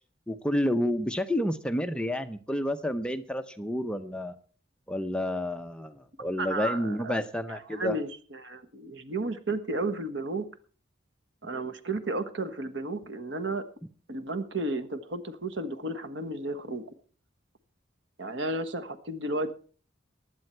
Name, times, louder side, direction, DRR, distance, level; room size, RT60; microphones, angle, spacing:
voice 1, 0.3-4.4 4.9-8.0, left 1 dB, 5° left, 8 dB, 0.6 m, -30 dB
voice 2, 6.4-7.2 7.5-10.5 11.4-13.6 14.1-16.8 18.2-19.5, right 2 dB, 70° right, 9 dB, 1.3 m, -33 dB
16.0 x 10.5 x 4.4 m, 0.41 s
head